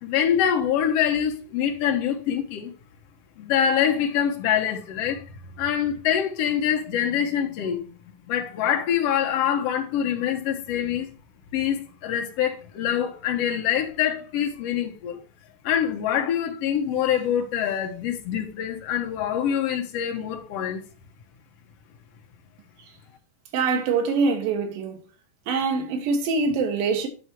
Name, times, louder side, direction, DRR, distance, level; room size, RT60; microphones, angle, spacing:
voice 1, 0.0-2.7 3.4-5.2 5.6-7.9 8.3-11.1 11.5-15.2 15.6-20.8, left 9 dB, 60° left, 1.8 m, -25 dB
voice 2, 23.5-25.0 25.5-27.1, right 4 dB, 90° right, 2.9 m, -24 dB
9.5 x 3.5 x 4.4 m
omnidirectional pair, 3.8 m